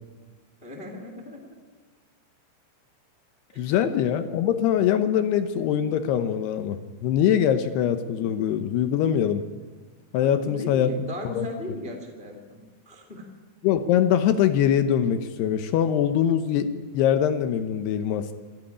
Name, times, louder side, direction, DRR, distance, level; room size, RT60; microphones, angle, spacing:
voice 1, 0.6-1.5 3.5-3.8 10.2-13.2, left 1 dB, 20° left, 3 dB, 1.6 m, -38 dB
voice 2, 3.6-9.4 10.1-11.5 13.6-18.3, left 9 dB, 75° left, 9 dB, 2.6 m, -23 dB
26.5 x 10.0 x 10.0 m, 1.4 s
omnidirectional pair, 5.3 m